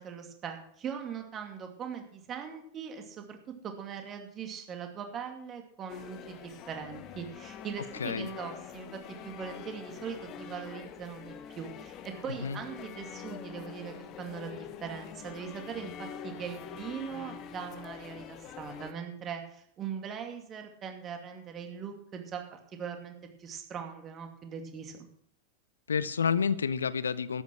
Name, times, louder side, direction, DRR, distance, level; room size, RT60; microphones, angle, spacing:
voice 1, 0.0-3.4 3.6-9.0 9.2-25.1, right 7 dB, 25° right, 4 dB, 2.5 m, -41 dB
sound 1, 5.9-18.9, left 9 dB, 35° left, 1.0 m, -45 dB
voice 2, 8.0-8.3 12.4-12.6 25.9-27.4, left 6 dB, 70° left, 17 dB, 0.6 m, -29 dB
12.5 x 9.4 x 6.3 m, 0.66 s
figure-of-eight pair, 90°, 0 cm